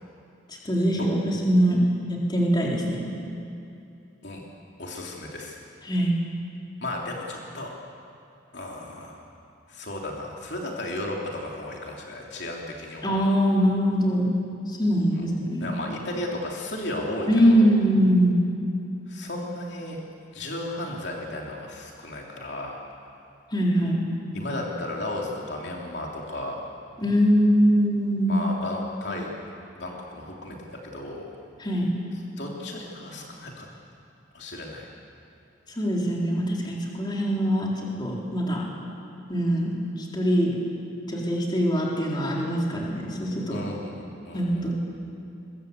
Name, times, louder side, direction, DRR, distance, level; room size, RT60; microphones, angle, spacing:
voice 1, 0.5-3.1 5.8-6.1 13.0-14.4 14.7-15.7 17.3-18.4 23.5-24.0 27.0-28.4 31.6-31.9 35.7-38.7 39.3-40.6 41.1-43.6 44.3-44.7, equal, 20° left, -3 dB, 3.9 m, -23 dB
voice 2, 4.8-5.6 6.8-7.7 8.5-9.2 9.7-13.1 15.1-15.3 15.6-17.7 19.1-20.0 20.3-22.9 24.3-26.6 28.3-29.3 29.8-31.3 32.4-33.7 34.3-34.9 43.5-44.7, left 1 dB, 60° left, -1 dB, 3.1 m, -34 dB
22.5 x 22.0 x 8.3 m, 2.7 s
head